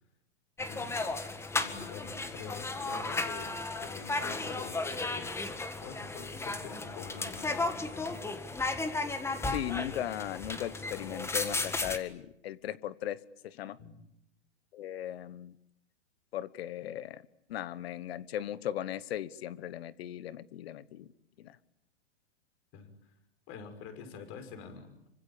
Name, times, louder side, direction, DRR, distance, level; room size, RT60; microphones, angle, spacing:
sound 1, 0.6-12.0, left 3 dB, 5° left, 1.8 m, -35 dB
voice 1, 0.7-1.2 1.5-5.4 5.8-8.2 13.8-14.0 22.7-22.9 23.5-25.1, left 6 dB, 35° left, 8 dB, 5.9 m, -46 dB
voice 2, 9.5-13.8 14.7-15.6 16.3-17.2 17.5-21.1 21.4-21.6, left 11 dB, 60° left, 17 dB, 1.4 m, -38 dB
27.0 x 25.0 x 8.8 m, 0.79 s
hypercardioid pair, 135°, 34 cm